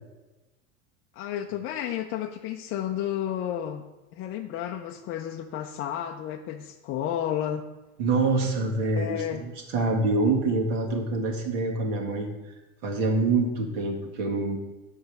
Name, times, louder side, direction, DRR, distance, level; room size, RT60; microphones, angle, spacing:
voice 1, 1.2-3.8 4.1-7.6 8.9-9.4, left 10 dB, 30° left, 3 dB, 0.5 m, -32 dB
voice 2, 8.0-12.3 12.8-14.6, right 3 dB, 65° right, 1 dB, 1.9 m, -26 dB
7.0 x 5.3 x 6.5 m, 1.1 s
hypercardioid pair, 115°, 41 cm